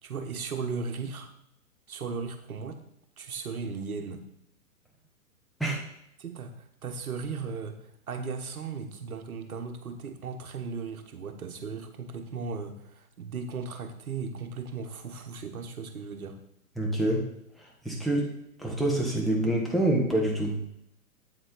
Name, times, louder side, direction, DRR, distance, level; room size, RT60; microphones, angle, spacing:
voice 1, 0.0-1.3 1.9-2.8 3.2-4.2 6.2-6.5 6.8-7.8 8.1-16.4, right 5 dB, 70° right, 6 dB, 1.5 m, -36 dB
voice 2, 16.8-17.2 17.8-18.3 18.6-20.5, right 1 dB, ahead, -2 dB, 1.4 m, -26 dB
8.5 x 7.8 x 4.0 m, 0.77 s
figure-of-eight pair, 120°, 45 cm